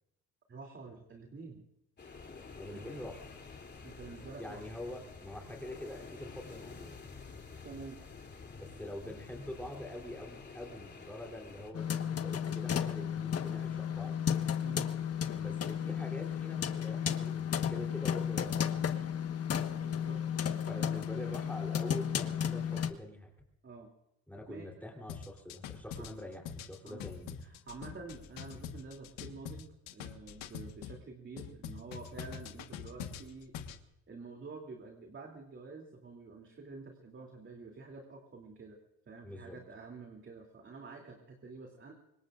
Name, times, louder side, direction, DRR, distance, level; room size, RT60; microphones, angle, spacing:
voice 1, 0.5-1.6 2.0-2.3 2.7-2.9 3.8-4.6 7.6-8.0 14.6-14.9 19.7-21.0 23.6-23.9 24.5-24.7 26.0-26.1 26.8-27.0 27.4-33.7 34.1-38.8 39.1-41.9, right 4 dB, 35° right, 2 dB, 3.0 m, -49 dB
sound 1, 2.0-11.7, left 4 dB, 30° left, 3.1 m, -49 dB
voice 2, 2.6-3.3 4.4-6.9 8.6-14.2 15.3-19.0 20.7-23.3 24.3-27.6 39.2-39.6, left 1 dB, 5° left, 0 dB, 3.5 m, -45 dB
sound 2, 11.7-22.9, left 8 dB, 45° left, 1.4 m, -33 dB
sound 3, 25.1-31.0 31.4-33.8, left 8 dB, 90° left, 1.5 m, -44 dB
26.0 x 21.0 x 2.5 m, 0.90 s
cardioid pair, 100°, 33 cm